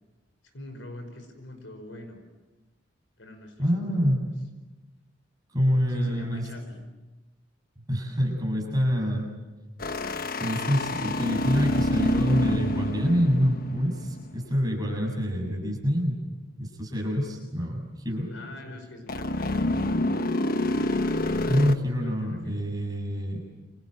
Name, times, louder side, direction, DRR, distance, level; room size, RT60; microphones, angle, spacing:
voice 1, 0.4-2.2 3.2-4.1 5.9-6.8 18.3-19.9 21.5-22.6, left 1 dB, 90° left, 7 dB, 5.4 m, -44 dB
voice 2, 3.6-4.2 5.5-6.4 7.9-9.3 10.4-16.2 16.6-18.3 21.5-23.4, equal, 20° right, 1 dB, 7.3 m, -26 dB
sound 1, 9.8-14.4 19.1-21.7, left 1 dB, 50° left, 1.2 m, -27 dB
29.0 x 26.5 x 7.8 m, 1.1 s
head